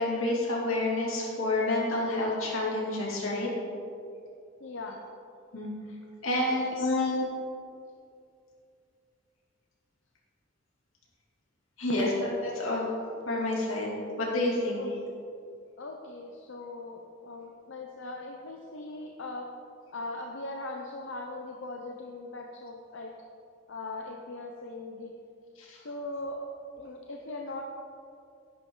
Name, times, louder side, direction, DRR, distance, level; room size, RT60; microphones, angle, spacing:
voice 1, 0.0-3.5 5.5-5.7 6.2-6.8 11.8-12.3 12.5-12.9 13.3-14.8 25.6-25.8, left 2 dB, 85° left, -4 dB, 2.8 m, -29 dB
voice 2, 4.6-5.0 6.4-7.3 14.8-15.0 15.8-19.5 19.9-23.1 23.7-25.1 25.8-26.4 26.8-27.6, left 3 dB, 65° left, 1 dB, 0.8 m, -37 dB
10.5 x 10.0 x 3.9 m, 2.5 s
head